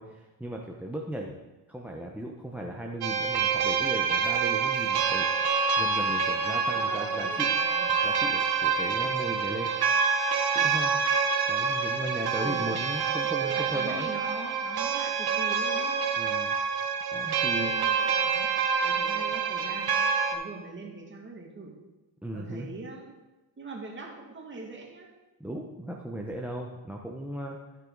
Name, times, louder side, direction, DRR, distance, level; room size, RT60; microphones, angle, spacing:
voice 1, 0.0-1.4 1.7-5.3 5.8-7.5 8.0-9.7 10.5-10.9 11.5-14.1 16.2-16.6 17.1-17.7 22.2-22.7 25.4-27.6, right 1 dB, 5° right, 1 dB, 0.8 m, -37 dB
sound 1, 3.0-20.3, right 5 dB, 55° right, 1.3 m, -27 dB
voice 2, 6.7-7.9 12.4-12.7 13.4-16.0 17.5-18.5 18.8-20.0 20.3-21.8 22.3-23.1 23.6-25.1, right 3 dB, 25° right, 0 dB, 2.1 m, -41 dB
14.5 x 5.5 x 4.0 m, 1.1 s
cardioid pair, 100°, 46 cm